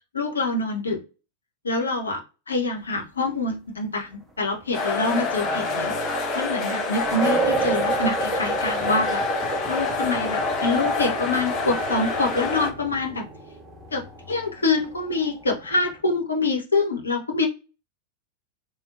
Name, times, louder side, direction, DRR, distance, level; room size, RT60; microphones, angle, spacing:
voice 1, 0.1-1.0 1.6-2.2 2.5-5.9 6.3-9.2 9.7-13.2 13.9-17.5, left 3 dB, 75° left, 3 dB, 0.8 m, -25 dB
sound 1, 4.5-15.9, right 4 dB, 20° right, 0.7 m, -32 dB
sound 2, 4.7-12.7, left 3 dB, 40° left, 1.2 m, -26 dB
3.5 x 2.2 x 2.5 m, 0.31 s
figure-of-eight pair, 90°, 0 cm